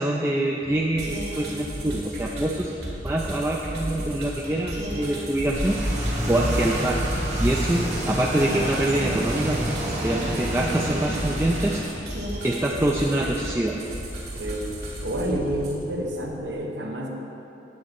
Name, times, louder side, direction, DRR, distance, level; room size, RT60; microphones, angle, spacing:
voice 1, 0.0-2.7 3.0-5.8 6.3-7.0 7.4-11.8 12.4-13.8, right 1 dB, 15° right, -2 dB, 0.3 m, -25 dB
sound 1, 0.6-16.5, left 1 dB, 30° left, 0.6 m, -45 dB
sound 2, 1.0-15.8, right 1 dB, 60° right, 1.6 m, -35 dB
sound 3, 5.5-11.8, right 1 dB, 40° right, 1.2 m, -28 dB
voice 2, 15.0-17.1, right 1 dB, 80° right, 1 dB, 1.0 m, -29 dB
8.7 x 4.2 x 6.8 m, 3.0 s
head